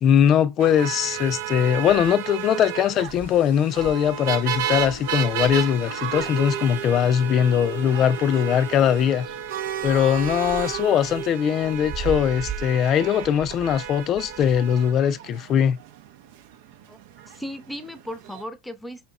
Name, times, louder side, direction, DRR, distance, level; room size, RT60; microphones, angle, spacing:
voice 1, 0.0-9.3 9.8-15.8, left 9 dB, 40° left, 0.4 m, -21 dB
sound 1, 0.6-18.4, right 11 dB, 65° right, 0.6 m, -33 dB
sound 2, 1.8-2.3 2.7-2.8 3.0-7.0 7.6-8.4 8.7-14.6, right 5 dB, 30° right, 0.8 m, -40 dB
sound 3, 3.2-9.8, left 7 dB, 85° left, 0.6 m, -43 dB
voice 2, 17.3-19.1, equal, 5° left, 0.7 m, -36 dB
5.5 x 2.9 x 2.4 m
hypercardioid pair, 100°, 0 cm